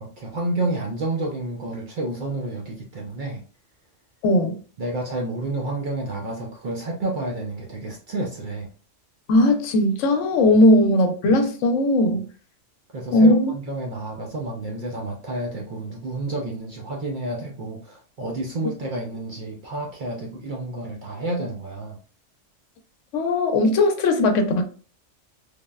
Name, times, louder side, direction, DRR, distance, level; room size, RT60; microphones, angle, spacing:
voice 1, 0.0-3.4 4.8-8.7 12.9-22.0, right 2 dB, 60° right, 0.5 m, -30 dB
voice 2, 4.2-4.5 9.3-12.3 13.1-13.5 23.1-24.7, left 1 dB, 85° left, 0.9 m, -18 dB
3.4 x 2.1 x 2.2 m
omnidirectional pair, 1.3 m